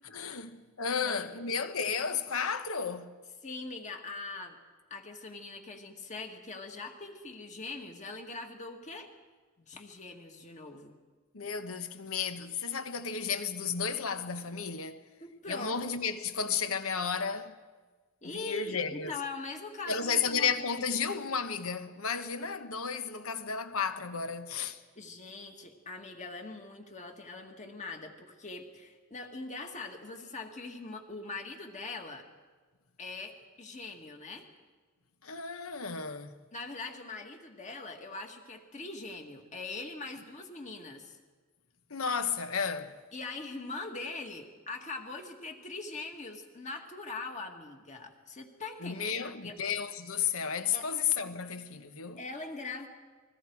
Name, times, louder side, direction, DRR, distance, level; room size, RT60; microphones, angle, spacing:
voice 1, 0.0-3.1 11.3-15.0 15.5-17.5 18.2-19.2 19.9-24.8 35.2-36.3 41.9-43.0 48.8-52.2, left 6 dB, 75° left, 1.1 m, -33 dB
voice 2, 1.0-1.3 3.4-4.6 4.9-9.1 9.6-10.9 15.2-15.8 18.2-20.8 25.0-32.2 33.0-34.5 36.5-41.2 43.1-49.6 50.7-50.9 52.2-52.9, left 3 dB, 35° left, 2.0 m, -42 dB
29.0 x 21.5 x 4.7 m
head